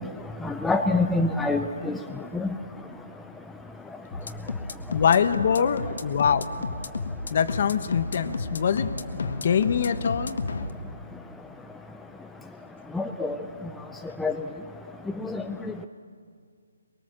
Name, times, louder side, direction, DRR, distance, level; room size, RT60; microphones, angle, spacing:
voice 1, 0.4-2.0 2.3-2.5 12.9-13.4 14.2-14.3 15.2-15.4, left 2 dB, 5° left, 5 dB, 0.5 m, -25 dB
sound 1, 4.1-10.7, left 3 dB, 60° left, 1.6 m, -32 dB
voice 2, 4.9-6.6 7.3-10.4, left 7 dB, 40° left, 12 dB, 1.2 m, -24 dB
23.5 x 23.0 x 7.5 m, 2.1 s
hypercardioid pair, 170°, 0 cm